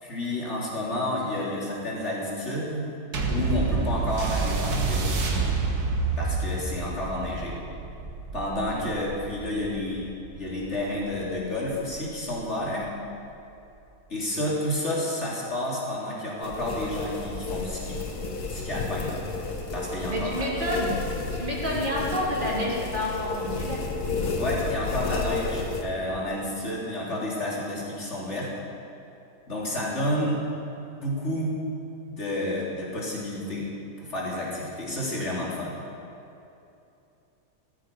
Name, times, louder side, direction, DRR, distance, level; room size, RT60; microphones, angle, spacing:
voice 1, 0.0-2.9 3.3-5.2 6.2-7.6 8.3-10.1 10.4-12.9 14.1-18.0 18.4-19.1 19.7-20.5 24.4-28.5 29.5-30.4 31.0-31.5 32.1-33.7 34.0-35.8, left 1 dB, 45° left, -5 dB, 3.7 m, -30 dB
sound 1, 3.1-11.9 12.7-12.8, right 4 dB, 85° right, 2.0 m, -29 dB
sound 2, 16.4-25.8, left 3 dB, 85° left, 1.9 m, -31 dB
voice 2, 20.1-20.9 21.3-23.8, equal, 30° right, -5 dB, 3.4 m, -29 dB
16.0 x 13.5 x 5.4 m, 2.7 s
omnidirectional pair, 1.6 m